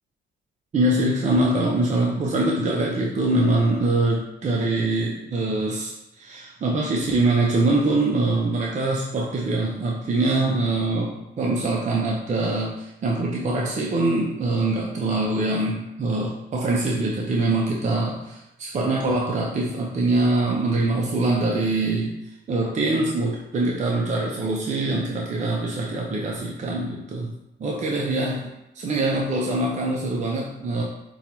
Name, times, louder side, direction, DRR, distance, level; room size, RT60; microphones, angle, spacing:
voice 1, 0.7-22.2 22.5-27.3 27.6-28.5 28.7-30.8, right 2 dB, 35° right, -2 dB, 0.5 m, -23 dB
5.4 x 2.2 x 2.9 m, 0.91 s
cardioid pair, 90°, 20 cm